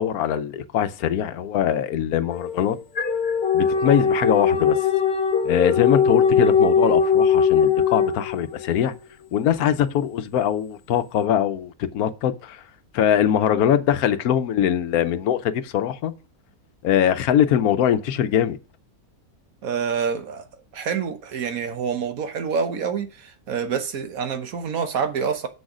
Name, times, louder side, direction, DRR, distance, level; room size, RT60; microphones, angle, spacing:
voice 1, 0.0-2.8 3.5-4.8 5.4-8.9 9.3-12.6 12.9-16.1 16.8-18.6, left 9 dB, 80° left, 1.2 m, -22 dB
sound 1, 2.3-8.7, left 6 dB, 45° left, 1.3 m, -20 dB
voice 2, 19.6-20.4 20.7-25.5, right 6 dB, 70° right, 1.4 m, -27 dB
7.0 x 6.3 x 4.9 m
omnidirectional pair, 1.6 m